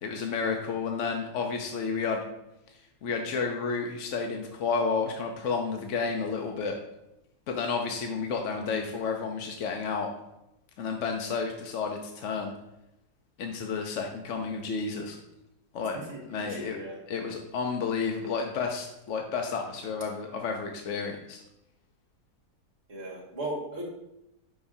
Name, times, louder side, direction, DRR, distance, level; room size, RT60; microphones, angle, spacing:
voice 1, 0.0-2.2 3.0-6.8 7.5-10.1 10.8-12.5 13.4-15.2 15.7-16.0 16.3-16.8 17.1-21.4, left 5 dB, 60° left, 2 dB, 1.0 m, -31 dB
voice 2, 15.9-17.0 22.9-23.8, right 1 dB, 45° right, -2 dB, 2.1 m, -37 dB
9.8 x 5.1 x 2.7 m, 0.88 s
omnidirectional pair, 1.6 m